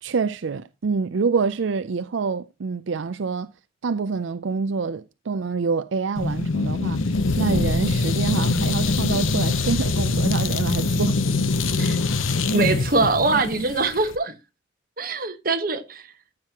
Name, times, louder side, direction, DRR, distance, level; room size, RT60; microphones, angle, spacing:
voice 1, 0.0-3.5 3.8-7.0 7.4-11.2, right 5 dB, 75° right, 0.5 m, -26 dB
sound 1, 6.2-14.2, left 3 dB, 85° left, 0.9 m, -23 dB
voice 2, 12.5-14.4 15.0-16.1, right 3 dB, 45° right, 1.3 m, -23 dB
14.5 x 7.5 x 2.9 m
head